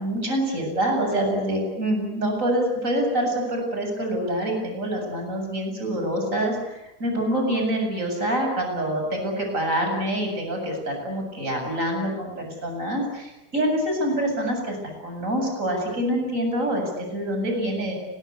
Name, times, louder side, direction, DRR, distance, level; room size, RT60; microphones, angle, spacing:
voice 1, 0.0-14.8 15.0-17.9, right 1 dB, 25° right, 2 dB, 8.1 m, -26 dB
30.0 x 22.0 x 8.4 m, 0.94 s
omnidirectional pair, 3.4 m